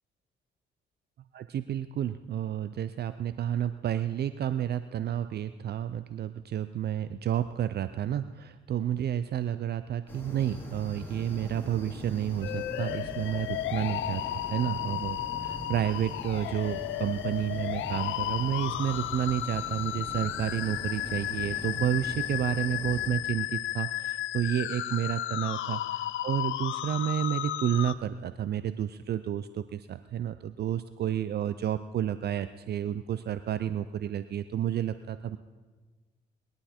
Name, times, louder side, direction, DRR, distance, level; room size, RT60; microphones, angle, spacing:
voice 1, 1.3-14.2 14.5-25.8 26.2-35.4, right 10 dB, 55° right, 12 dB, 0.5 m, -31 dB
sound 1, 10.1-23.1, equal, 10° left, 3.6 m, -42 dB
sound 2, 12.4-27.9, left 14 dB, 80° left, 0.5 m, -34 dB
21.0 x 11.5 x 4.4 m, 1.4 s
cardioid pair, 90°, 20 cm